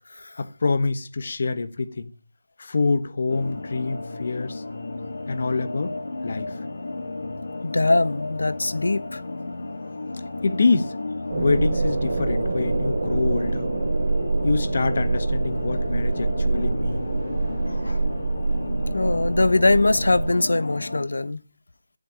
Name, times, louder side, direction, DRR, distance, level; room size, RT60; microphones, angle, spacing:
voice 1, 0.4-2.1 2.6-4.6 5.3-5.9 6.2-6.5 10.4-10.9 11.3-13.7 14.4-17.1, left 3 dB, 40° left, 1.2 m, -25 dB
sound 1, 3.3-21.0, left 2 dB, 60° left, 2.8 m, -34 dB
voice 2, 7.6-9.2 17.7-18.0 18.9-21.4, left 2 dB, 75° left, 1.1 m, -22 dB
sound 2, 11.3-20.3, right 3 dB, 40° right, 3.6 m, -25 dB
12.0 x 7.8 x 8.8 m
figure-of-eight pair, 170°, 0 cm